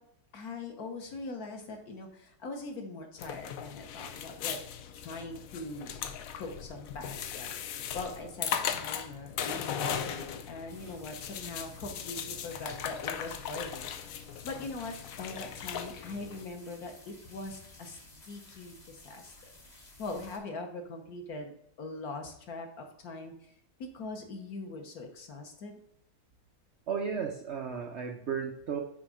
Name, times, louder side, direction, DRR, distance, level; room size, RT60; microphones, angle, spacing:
voice 1, 0.3-4.6 4.9-5.9 6.4-18.0 18.3-19.3 20.0-21.5 21.8-23.5 23.8-25.7, left 3 dB, 55° left, 4 dB, 1.3 m, -41 dB
sound 1, 3.2-16.5, left 8 dB, 80° left, 0.7 m, -38 dB
sound 2, 10.7-20.4, left 2 dB, 30° left, 0.8 m, -54 dB
voice 2, 26.9-28.8, right 6 dB, 85° right, 3 dB, 0.6 m, -34 dB
6.2 x 4.3 x 4.9 m, 0.72 s
omnidirectional pair, 2.1 m